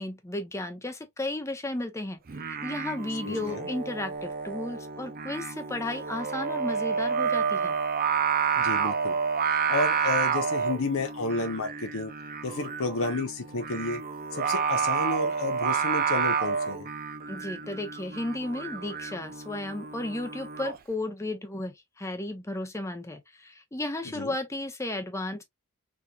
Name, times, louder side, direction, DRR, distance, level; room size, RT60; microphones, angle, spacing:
voice 1, 0.0-2.2 2.5-7.7 17.3-25.4, left 2 dB, 15° left, 0.7 m, -34 dB
Singing, 2.3-20.8, right 6 dB, 40° right, 0.6 m, -30 dB
voice 2, 3.2-3.7 8.6-9.2 9.5-12.1 12.4-14.0 14.3-16.9 24.1-24.3, left 3 dB, 65° left, 0.7 m, -31 dB
3.6 x 2.9 x 2.3 m
head